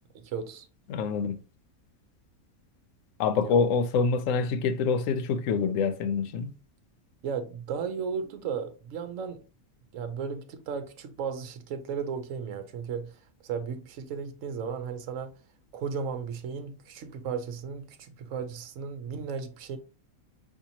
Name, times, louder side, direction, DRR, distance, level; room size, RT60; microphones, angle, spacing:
voice 1, 0.2-0.7 3.4-3.6 7.2-9.4 9.9-15.3 15.7-19.8, right 6 dB, 65° right, 1.1 m, -35 dB
voice 2, 0.9-1.4 3.2-6.5, left 5 dB, 70° left, 0.9 m, -26 dB
5.6 x 2.9 x 2.8 m
omnidirectional pair, 1.5 m